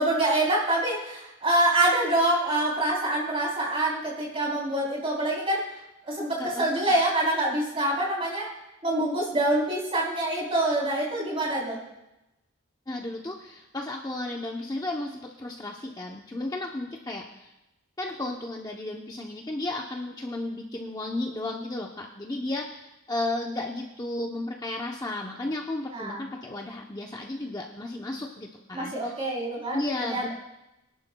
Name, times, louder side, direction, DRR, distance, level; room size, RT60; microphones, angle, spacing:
voice 1, 0.0-5.6 6.1-8.5 8.8-11.8 25.9-26.2 28.7-30.3, right 1 dB, 25° right, -3 dB, 3.6 m, -26 dB
voice 2, 12.9-17.5 18.0-29.1 29.7-30.3, left 2 dB, 20° left, 0 dB, 0.7 m, -33 dB
23.0 x 11.0 x 2.3 m, 0.93 s
head